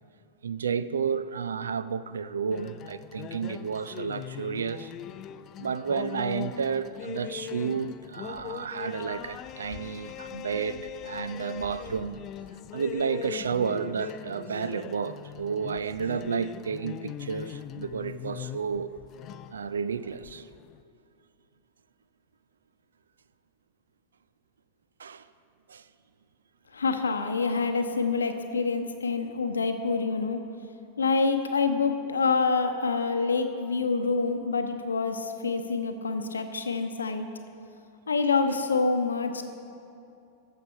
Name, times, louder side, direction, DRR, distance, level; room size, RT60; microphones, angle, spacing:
voice 1, 0.4-4.9 5.6-12.2 12.7-18.9 19.5-20.5 25.0-25.3 25.7-25.9, right 6 dB, 70° right, 0.3 m, -31 dB
sound 1, 2.5-20.8, left 11 dB, 35° left, 0.3 m, -41 dB
voice 2, 26.7-30.4 31.0-37.3 38.1-39.4, left 4 dB, 75° left, 0.8 m, -26 dB
13.5 x 6.7 x 5.5 m
figure-of-eight pair, 90°, 0 cm